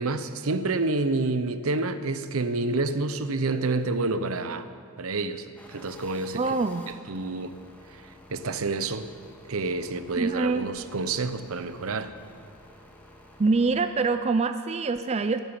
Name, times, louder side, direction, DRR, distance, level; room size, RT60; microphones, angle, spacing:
voice 1, 0.0-4.7 5.0-6.5 7.1-7.5 7.9-8.0 8.3-9.1 9.5-12.1, right 3 dB, 70° right, 11 dB, 0.8 m, -28 dB
sound 1, 5.6-13.7, left 1 dB, 5° left, 1.6 m, -51 dB
voice 2, 6.3-6.9 10.2-10.7 13.4-15.4, right 3 dB, 30° right, 9 dB, 0.4 m, -25 dB
14.5 x 9.1 x 9.8 m, 2.2 s
head